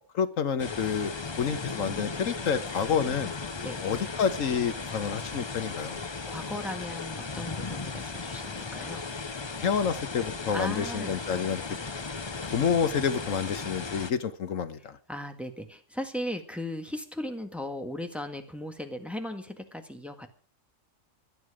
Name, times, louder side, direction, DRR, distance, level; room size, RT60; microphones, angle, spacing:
voice 1, 0.1-1.1 1.4-3.3 3.8-6.0 9.6-11.6 12.5-15.0, left 7 dB, 90° left, 12 dB, 1.5 m, -28 dB
sound 1, 0.6-14.1, left 4 dB, 25° left, 0.7 m, -36 dB
voice 2, 6.3-9.1 10.5-11.2 15.1-20.3, left 1 dB, ahead, 6 dB, 1.6 m, -37 dB
24.5 x 9.5 x 5.0 m, 0.42 s
omnidirectional pair, 1.3 m